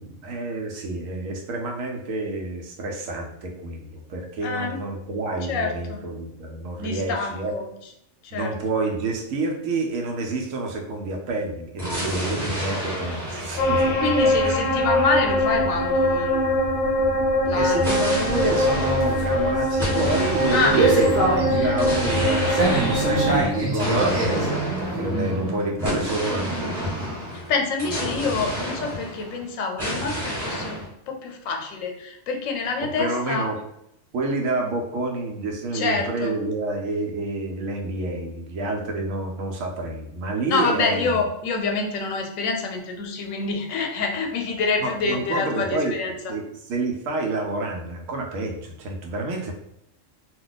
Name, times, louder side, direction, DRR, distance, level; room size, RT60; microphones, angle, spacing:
voice 1, 0.0-7.5 8.3-14.6 17.5-21.2 21.5-24.5 24.8-26.8 32.8-33.6 34.1-41.2 44.8-49.5, right 2 dB, 85° right, 2 dB, 1.0 m, -28 dB
voice 2, 4.4-4.8 5.5-6.0 6.8-7.7 8.2-8.5 14.0-16.5 17.4-17.9 20.5-21.1 21.5-21.8 25.1-25.4 27.3-33.5 35.7-36.4 40.5-46.2, left 4 dB, 90° left, 3 dB, 1.0 m, -27 dB
sound 1, 11.8-16.5 17.8-29.4 29.8-30.9, equal, 20° right, 1.2 m, -30 dB
sound 2, 13.6-23.4, left 1 dB, 65° left, 0.7 m, -23 dB
sound 3, 18.8-25.6, right 2 dB, 40° right, 0.9 m, -25 dB
2.4 x 2.2 x 3.9 m, 0.79 s
omnidirectional pair, 1.3 m